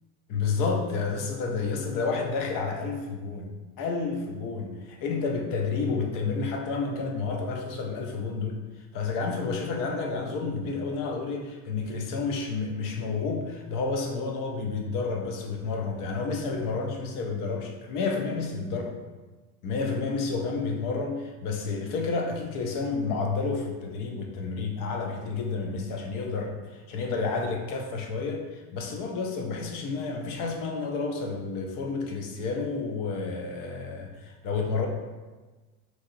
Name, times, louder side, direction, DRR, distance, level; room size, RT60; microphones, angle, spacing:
voice 1, 0.3-3.5 3.8-19.0 19.6-34.9, left 4 dB, 50° left, 2 dB, 0.6 m, -30 dB
3.0 x 2.7 x 2.6 m, 1.3 s
supercardioid pair, 125°, 42 cm